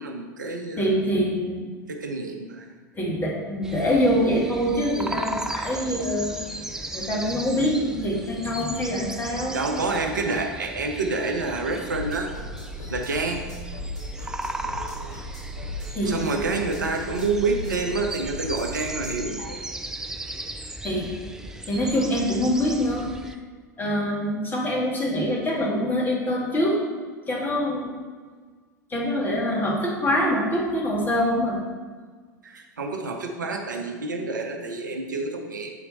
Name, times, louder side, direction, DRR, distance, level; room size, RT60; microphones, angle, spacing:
voice 1, 0.0-0.9 1.9-2.8 9.5-12.3 12.9-13.4 16.1-19.6 32.4-35.7, right 3 dB, 75° right, 4 dB, 0.7 m, -28 dB
voice 2, 0.8-1.7 2.9-6.3 6.9-9.6 12.8-12.9 15.9-16.2 20.8-21.1 21.7-23.1 23.8-26.8 27.3-27.9 28.9-31.6, equal, 20° left, -3 dB, 1.6 m, -24 dB
sound 1, 3.6-23.4, right 1 dB, 5° right, 0.4 m, -36 dB
sound 2, 11.9-19.3, equal, 75° left, 1.9 m, -37 dB
7.3 x 4.3 x 4.0 m, 1.5 s
figure-of-eight pair, 85°, 10 cm